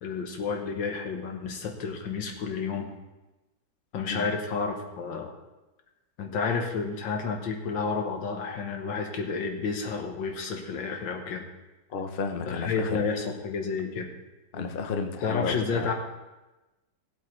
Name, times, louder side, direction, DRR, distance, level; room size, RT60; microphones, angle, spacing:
voice 1, 0.0-2.9 3.9-5.3 6.2-11.5 12.5-14.1 15.2-15.9, left 5 dB, 90° left, 3 dB, 2.0 m, -30 dB
voice 2, 11.9-13.1 14.5-15.9, left 5 dB, 40° left, 5 dB, 0.8 m, -32 dB
17.5 x 8.1 x 3.2 m, 1.1 s
omnidirectional pair, 2.0 m